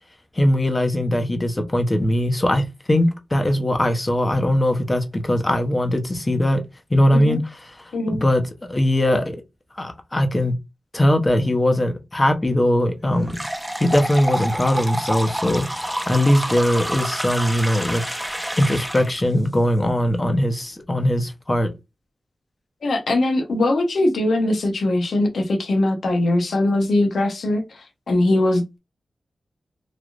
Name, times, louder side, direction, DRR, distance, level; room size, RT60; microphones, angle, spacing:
voice 1, 0.3-6.6 6.9-7.4 7.7-8.4 8.7-9.4 9.7-10.5 10.9-13.4 13.8-18.0 18.6-21.7, left 1 dB, 30° left, 0.8 m, -20 dB
voice 2, 7.9-8.2 22.8-28.8, left 1 dB, 80° left, 0.8 m, -21 dB
sound 1, 13.3-19.2, equal, 10° right, 0.5 m, -28 dB
3.4 x 2.4 x 2.4 m
cardioid pair, 50°, 0 cm